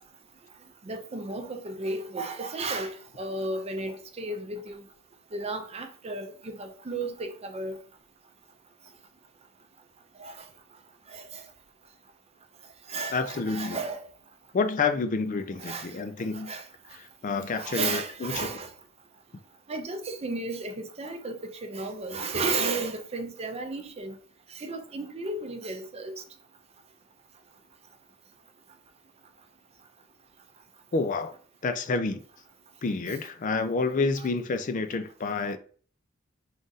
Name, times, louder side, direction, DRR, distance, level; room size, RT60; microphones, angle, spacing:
voice 1, 0.9-4.8 5.3-7.8 10.2-10.3 11.1-11.2 12.9-14.0 15.6-15.9 16.5-16.6 17.5-18.7 19.7-24.1 24.6-26.1, right 3 dB, 30° right, 0.5 m, -33 dB
voice 2, 13.1-13.8 14.5-16.5 16.9-18.5 30.9-31.3 31.6-32.2 32.8-35.6, left 4 dB, 40° left, 0.4 m, -29 dB
3.7 x 2.5 x 4.0 m
head